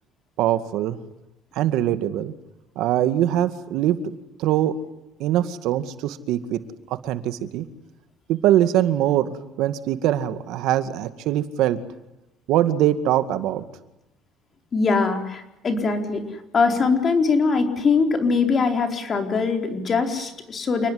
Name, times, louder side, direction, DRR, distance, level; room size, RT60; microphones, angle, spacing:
voice 1, 0.4-1.0 1.5-2.3 2.8-4.0 4.4-4.7 5.2-6.6 6.9-7.7 8.3-11.8 12.5-13.7, right 12 dB, 70° right, 10 dB, 2.1 m, -22 dB
voice 2, 14.7-20.9, left 4 dB, 30° left, 5 dB, 4.3 m, -22 dB
29.5 x 20.5 x 9.6 m, 0.91 s
cardioid pair, 160°, 0 cm